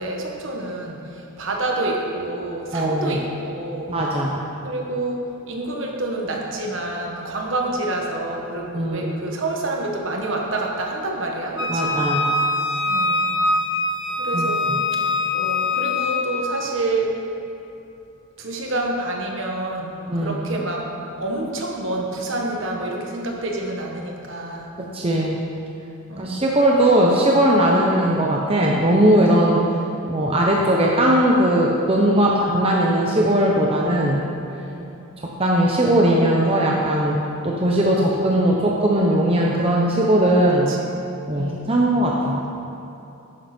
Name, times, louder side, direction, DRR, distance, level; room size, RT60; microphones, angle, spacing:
voice 1, 0.0-4.0 4.6-5.2 5.5-12.0 12.9-13.3 14.2-14.8 15.3-17.1 18.4-20.8 21.2-24.7 26.1-26.4 32.1-32.6 34.6-35.0 40.7-40.8 41.3-41.7, right 2 dB, 55° right, 0 dB, 1.5 m, -28 dB
voice 2, 2.7-3.2 3.9-4.4 8.7-9.1 11.7-12.3 14.3-14.8 20.1-20.4 24.9-25.4 26.2-29.6 30.0-34.2 35.2-40.7 41.3-42.4, right 1 dB, 25° right, -3 dB, 0.8 m, -19 dB
Wind instrument woodwind instrument, 11.6-16.3, left 2 dB, 55° left, 1.3 m, -23 dB
11.0 x 9.7 x 4.4 m, 2.8 s
head